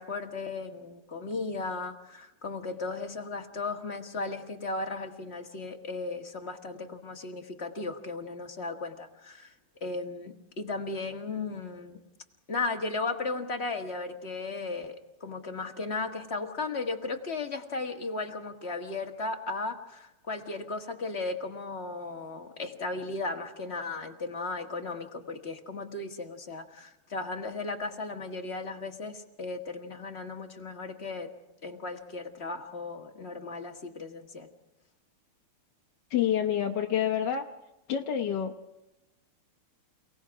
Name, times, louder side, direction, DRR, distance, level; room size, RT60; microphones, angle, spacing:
voice 1, 0.0-9.5 9.8-12.0 12.5-31.3 31.6-34.5, left 3 dB, 30° left, 3 dB, 1.8 m, -36 dB
voice 2, 36.1-37.4 37.9-38.5, left 9 dB, 60° left, 3 dB, 1.4 m, -27 dB
29.5 x 18.5 x 4.8 m, 0.93 s
omnidirectional pair, 2.4 m